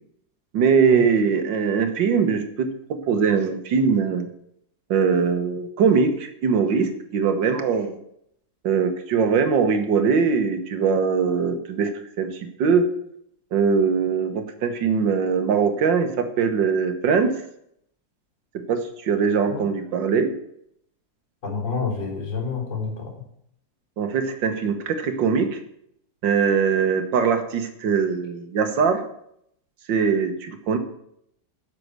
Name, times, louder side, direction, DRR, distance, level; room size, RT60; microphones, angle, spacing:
voice 1, 0.5-4.3 4.9-8.0 8.6-11.9 12.2-12.3 12.6-12.9 13.5-17.4 18.7-20.3 24.0-25.6 26.2-29.0 29.9-30.8, right 6 dB, 80° right, 7 dB, 1.9 m, -21 dB
voice 2, 21.4-23.1, left 5 dB, 75° left, -3 dB, 4.6 m, -28 dB
11.0 x 6.8 x 6.6 m, 0.73 s
omnidirectional pair, 2.0 m